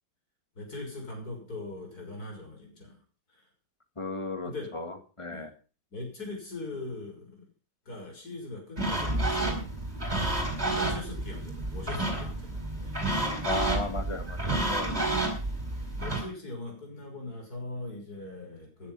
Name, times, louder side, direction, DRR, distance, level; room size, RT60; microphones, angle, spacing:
voice 1, 0.5-3.0 3.3-3.5 4.4-4.8 5.3-5.5 5.9-7.5 7.8-9.7 10.7-13.0 15.1-15.4 15.9-18.9, left 2 dB, 45° left, 2 dB, 6.5 m, -41 dB
voice 2, 4.0-5.5 13.5-15.2, left 3 dB, 15° left, 8 dB, 1.7 m, -36 dB
sound 1, 8.8-16.2, right 2 dB, 20° right, 4.8 m, -30 dB
14.5 x 11.0 x 5.5 m, 0.36 s
omnidirectional pair, 2.2 m